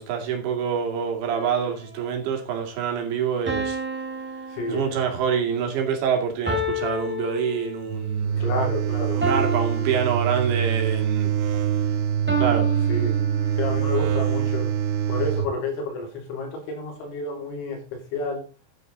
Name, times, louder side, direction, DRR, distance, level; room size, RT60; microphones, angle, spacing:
voice 1, 0.0-3.8 4.7-8.4 9.1-11.3 12.4-12.7, right 7 dB, 65° right, 4.6 m, -26 dB
sound 1, 1.3-2.1 3.5-5.3 6.5-8.1 9.2-10.9 12.3-13.9, right 1 dB, 5° right, 1.9 m, -30 dB
voice 2, 4.5-5.1 8.4-9.3 12.9-13.1 13.6-14.7 15.1-18.5, left 3 dB, 70° left, 5.5 m, -30 dB
sound 2, 7.9-15.5, right 9 dB, 90° right, 3.9 m, -24 dB
12.0 x 9.7 x 4.0 m
omnidirectional pair, 5.7 m